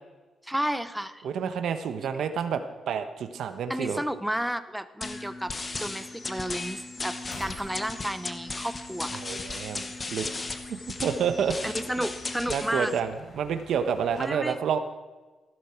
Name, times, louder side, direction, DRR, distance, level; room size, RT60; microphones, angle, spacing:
voice 1, 0.4-1.2 2.0-2.1 3.7-5.5 5.8-9.2 11.6-12.9 14.2-14.6, equal, 5° right, 12 dB, 0.6 m, -32 dB
voice 2, 1.2-4.0 9.2-9.8 10.1-11.7 12.5-14.8, right 7 dB, 75° right, 8 dB, 1.1 m, -29 dB
sound 1, 5.0-13.0, left 3 dB, 25° left, 0.9 m, -36 dB
sound 2, 7.2-14.3, left 2 dB, 45° left, 4.3 m, -50 dB
15.5 x 12.5 x 4.5 m, 1.2 s
cardioid pair, 125°, 0 cm